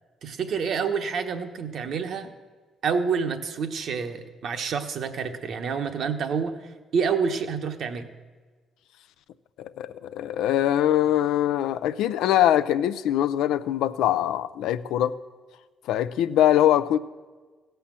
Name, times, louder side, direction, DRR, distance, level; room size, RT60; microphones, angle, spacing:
voice 1, 0.2-2.3 2.8-8.1, right 6 dB, 65° right, 1.0 m, -28 dB
voice 2, 9.6-15.2 15.9-17.0, left 12 dB, 90° left, 0.4 m, -23 dB
16.0 x 5.7 x 7.4 m
cardioid pair, 90°, 0 cm